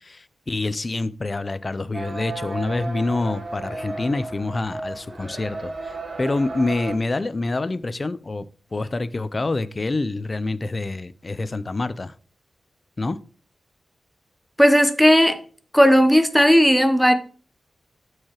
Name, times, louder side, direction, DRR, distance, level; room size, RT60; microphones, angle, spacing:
voice 1, 0.0-12.1 13.0-13.2, left 2 dB, 35° left, 0.4 m, -27 dB
sound 1, 1.9-7.0, right 2 dB, 50° right, 1.3 m, -34 dB
voice 2, 14.6-15.4 15.7-17.1, equal, ahead, 0.7 m, -15 dB
12.0 x 4.7 x 2.9 m
wide cardioid pair, 95°, 0 cm